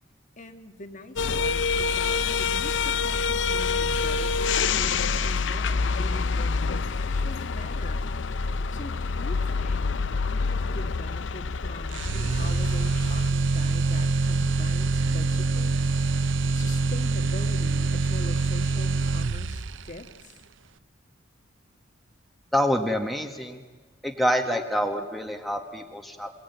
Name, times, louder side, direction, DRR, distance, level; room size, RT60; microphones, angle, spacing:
voice 1, 0.4-8.1 8.7-9.9 10.3-15.8 16.5-20.4, left 1 dB, 40° left, 6 dB, 1.7 m, -42 dB
sound 1, 1.2-13.3, left 4 dB, 75° left, 0.6 m, -27 dB
sound 2, 11.9-19.9, right 3 dB, 80° right, 0.7 m, -25 dB
voice 2, 22.5-23.6 24.0-26.3, equal, ahead, 3 dB, 1.6 m, -26 dB
28.5 x 17.5 x 9.2 m, 1.5 s
head